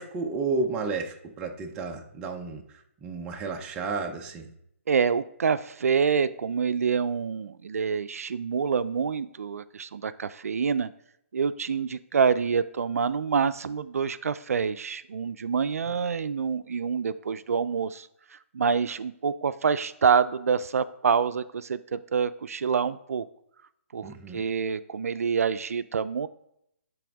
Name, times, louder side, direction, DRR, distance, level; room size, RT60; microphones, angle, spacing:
voice 1, 0.0-2.6 3.0-4.4 24.0-24.4, right 3 dB, 10° right, 3 dB, 0.5 m, -32 dB
voice 2, 4.9-10.9 11.3-18.1 18.5-23.3 23.9-26.3, right 6 dB, 85° right, 14 dB, 0.4 m, -26 dB
10.0 x 3.5 x 3.5 m, 0.75 s
hypercardioid pair, 160°, 8 cm